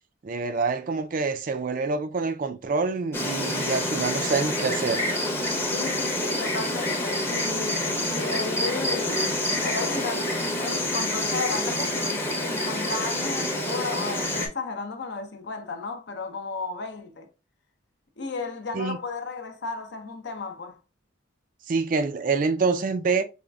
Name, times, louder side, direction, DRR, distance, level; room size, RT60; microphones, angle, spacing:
voice 1, 0.2-5.0 18.7-19.0 21.7-23.2, right 4 dB, 40° right, 0.3 m, -26 dB
Insect, 3.1-14.5, left 1 dB, 10° left, 0.7 m, -27 dB
voice 2, 5.7-9.3 9.6-10.3 10.6-17.3 18.2-20.8, left 4 dB, 55° left, 0.6 m, -34 dB
4.9 x 2.4 x 2.3 m
head